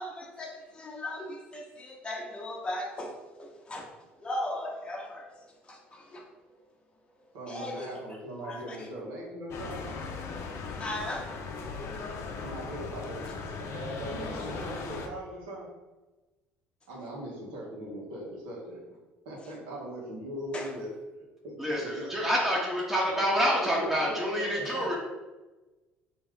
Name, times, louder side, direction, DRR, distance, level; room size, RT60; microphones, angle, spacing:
voice 1, 0.0-3.1 3.4-3.9 4.2-5.3 5.7-6.2 7.5-7.9 8.4-8.9 10.8-11.3 20.5-20.7 24.6-24.8, left 1 dB, 20° left, -1 dB, 0.9 m, -37 dB
voice 2, 7.3-9.9 12.4-13.2 13.6-15.7 16.9-18.8 19.2-20.9 21.4-22.1 23.0-25.0, equal, 80° right, -3 dB, 1.2 m, -39 dB
sound 1, 9.5-15.1, left 4 dB, 55° left, 0.6 m, -38 dB
voice 3, 21.6-25.0, equal, 5° right, -5 dB, 1.0 m, -27 dB
3.5 x 2.8 x 3.3 m, 1.2 s
hypercardioid pair, 70°, 5 cm